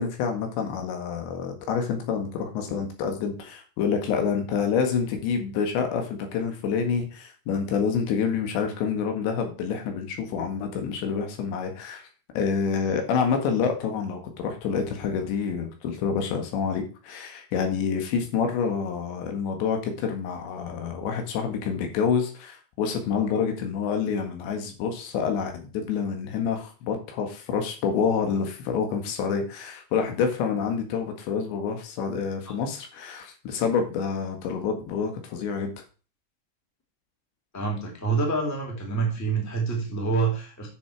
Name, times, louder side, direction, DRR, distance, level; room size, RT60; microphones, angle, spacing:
voice 1, 0.0-12.1 12.4-35.7, left 6 dB, 75° left, 4 dB, 3.9 m, -27 dB
voice 2, 37.5-40.7, right 4 dB, 5° left, 0 dB, 2.1 m, -27 dB
9.8 x 7.5 x 4.7 m, 0.36 s
omnidirectional pair, 5.2 m